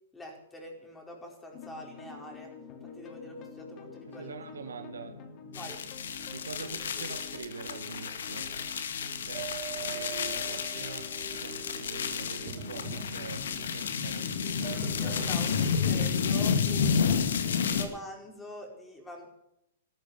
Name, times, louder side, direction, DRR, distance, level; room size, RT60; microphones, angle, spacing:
voice 1, 0.1-2.5 2.8-4.3 5.5-5.8 15.0-17.2 17.7-19.3, equal, 10° left, 4.9 m, -44 dB
sound 1, 1.5-18.4, left 3 dB, 35° left, 3.0 m, -47 dB
voice 2, 4.1-5.3 6.3-8.6 9.3-14.6, right 5 dB, 85° right, 1.8 m, -44 dB
sound 2, 5.5-17.9, left 6 dB, 75° left, 2.1 m, -31 dB
sound 3, 9.3-11.3 12.5-13.7 14.6-16.0, right 10 dB, 30° right, 2.8 m, -42 dB
14.0 x 13.0 x 7.1 m
hypercardioid pair, 120°, 0 cm